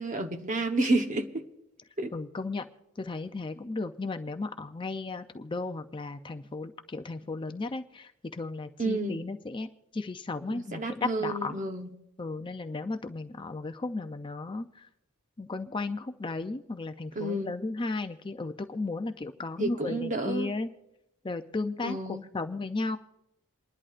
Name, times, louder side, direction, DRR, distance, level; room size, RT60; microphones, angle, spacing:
voice 1, 0.0-1.4 2.0-2.1 8.8-9.2 10.5-11.9 17.1-17.5 19.6-20.5 21.8-22.2, right 2 dB, 35° right, 1.0 m, -30 dB
voice 2, 2.1-2.7 3.0-9.7 9.9-11.6 12.2-14.9 15.4-20.7 21.2-23.0, left 3 dB, 20° left, 0.4 m, -35 dB
28.5 x 11.0 x 2.5 m
head